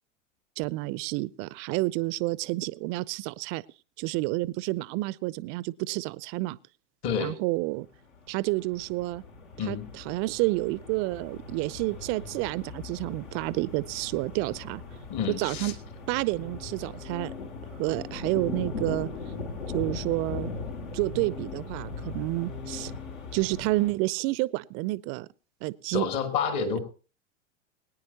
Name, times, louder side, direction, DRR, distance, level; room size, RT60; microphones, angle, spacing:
voice 1, 0.6-3.6 4.0-6.6 7.2-7.9 8.3-9.2 9.7-9.8 10.1-14.8 15.3-15.7 16.1-17.3 17.8-19.1 19.7-20.5 20.9-22.9 23.3-25.3 25.6-26.1, right 21 dB, 35° right, 0.5 m, -29 dB
voice 2, 7.0-7.3 9.6-9.9 15.1-15.7 25.9-26.8, left 6 dB, 45° left, 2.6 m, -29 dB
sound 1, 8.0-23.9, left 4 dB, 70° left, 2.5 m, -39 dB
21.5 x 9.8 x 2.9 m
figure-of-eight pair, 95°, 38 cm